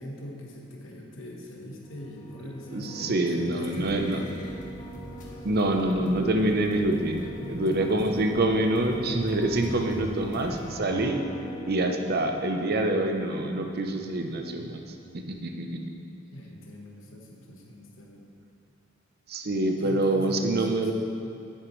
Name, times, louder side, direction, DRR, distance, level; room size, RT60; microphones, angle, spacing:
voice 1, 0.0-4.3 7.3-8.0 16.3-18.3 19.8-20.9, left 1 dB, 80° left, -1 dB, 1.2 m, -42 dB
sound 1, 1.8-15.2, equal, 20° left, 0.6 m, -41 dB
voice 2, 2.7-4.2 5.4-11.2 11.7-14.8 15.1-15.8 19.3-20.9, right 1 dB, 55° right, 4 dB, 0.7 m, -26 dB
sound 2, 3.6-10.7, equal, 40° left, 1.4 m, -47 dB
10.0 x 8.8 x 3.2 m, 2.5 s
head